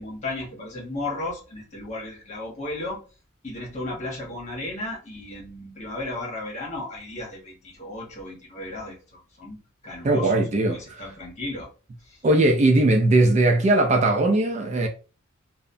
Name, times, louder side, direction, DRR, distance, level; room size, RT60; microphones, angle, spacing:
voice 1, 0.0-3.0 3.4-10.4 10.7-11.7 12.0-12.2, left 2 dB, 35° left, 1.0 m, -35 dB
voice 2, 10.0-11.0 12.2-14.9, right 2 dB, 35° right, 0.3 m, -19 dB
2.8 x 2.0 x 2.5 m
head